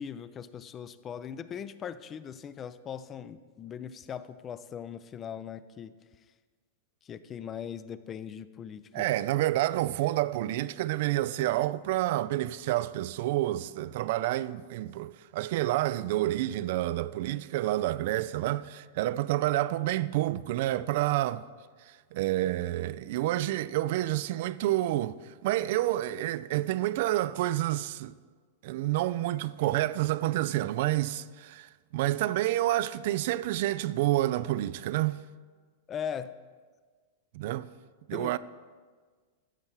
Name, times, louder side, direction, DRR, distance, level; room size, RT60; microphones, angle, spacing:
voice 1, 0.0-6.0 7.0-9.0 35.9-36.4 38.1-38.4, left 8 dB, 25° left, 0.5 m, -40 dB
voice 2, 8.9-21.4 21.8-28.1 28.6-35.2 37.3-37.7 38.1-38.4, right 15 dB, 55° right, 0.3 m, -29 dB
14.0 x 6.6 x 4.5 m
figure-of-eight pair, 100°, 0 cm